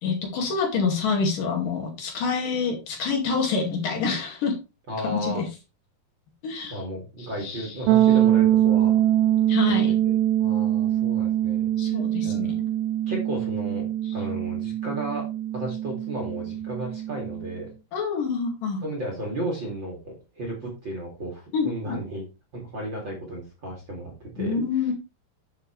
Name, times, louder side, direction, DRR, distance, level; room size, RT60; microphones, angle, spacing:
voice 1, 0.0-4.6 5.0-5.5 6.4-6.8 7.4-7.7 9.5-10.0 11.8-12.7 17.9-18.8 21.5-22.0 24.4-24.9, left 5 dB, 60° left, 1 dB, 3.8 m, -27 dB
voice 2, 4.9-5.4 6.7-9.0 9.8-10.1 10.4-11.7 12.2-12.5 13.1-15.2 15.5-17.7 18.8-22.2 22.5-24.5, right 1 dB, 30° right, -2 dB, 2.7 m, -34 dB
sound 1, 7.9-17.6, right 12 dB, 85° right, 2.8 m, -23 dB
12.0 x 7.3 x 3.3 m, 0.29 s
omnidirectional pair, 4.7 m